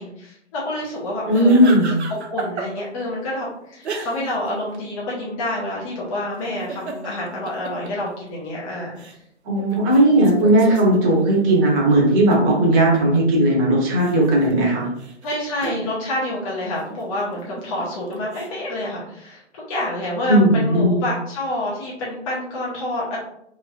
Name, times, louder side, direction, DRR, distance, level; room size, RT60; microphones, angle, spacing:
voice 1, 0.0-1.8 2.3-9.0 9.6-9.9 15.2-23.2, left 1 dB, 30° left, -5 dB, 0.7 m, -28 dB
voice 2, 1.3-1.9 9.4-14.9 20.3-21.0, right 1 dB, 20° right, -3 dB, 1.0 m, -16 dB
sound 1, 1.3-3.0 3.8-4.5 4.7-4.8 6.4-8.5 9.0-9.1 9.6-13.4 13.8-15.9 16.9-18.5, right 4 dB, 65° right, 0.7 m, -34 dB
3.2 x 2.8 x 2.4 m, 0.77 s
figure-of-eight pair, 125°, 36 cm